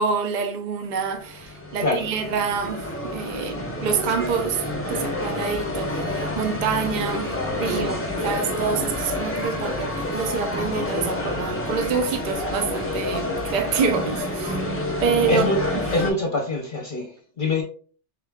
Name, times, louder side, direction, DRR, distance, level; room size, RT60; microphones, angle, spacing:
voice 1, 0.0-14.6 15.0-15.4 15.7-15.8, right 5 dB, 45° right, 0.6 m, -27 dB
sound 1, 1.0-16.1, left 1 dB, 10° left, 0.8 m, -28 dB
voice 2, 1.8-2.1 3.4-3.6 7.2-7.4 7.6-8.1 15.3-15.6 15.9-17.6, left 2 dB, 45° left, 0.9 m, -26 dB
4.9 x 3.7 x 2.3 m
omnidirectional pair, 1.3 m